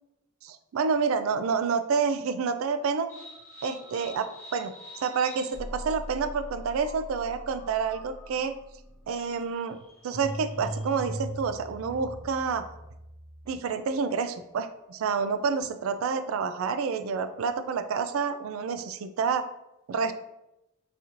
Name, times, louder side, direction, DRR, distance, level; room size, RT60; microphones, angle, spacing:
voice 1, 0.4-3.1 3.6-4.7 5.0-8.5 9.1-9.8 10.0-12.6 13.5-19.5 19.9-20.1, right 5 dB, 75° right, 10 dB, 0.3 m, -28 dB
sound 1, 3.1-13.7, right 1 dB, 10° left, 0.7 m, -41 dB
4.0 x 2.5 x 2.9 m, 0.89 s
head